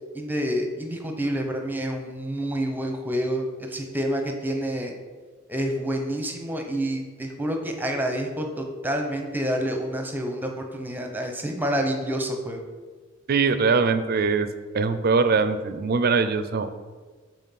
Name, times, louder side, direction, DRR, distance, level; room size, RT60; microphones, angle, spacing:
voice 1, 0.1-4.9 5.5-12.6, equal, 10° right, 3 dB, 0.8 m, -28 dB
voice 2, 13.3-14.5 14.7-16.7, right 4 dB, 50° right, 10 dB, 0.5 m, -22 dB
5.8 x 4.4 x 5.7 m, 1.4 s
head